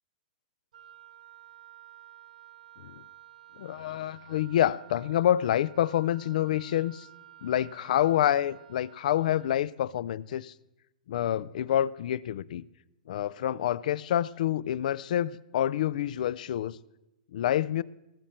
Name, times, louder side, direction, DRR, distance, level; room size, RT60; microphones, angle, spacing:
Wind instrument woodwind instrument, 0.7-9.6, right 13 dB, 75° right, 0.5 m, -53 dB
voice 1, 3.6-7.1 7.4-10.5 11.1-12.6 13.1-16.8 17.3-17.8, left 11 dB, 70° left, 0.4 m, -27 dB
18.5 x 7.4 x 4.4 m
hypercardioid pair, 135°, 4 cm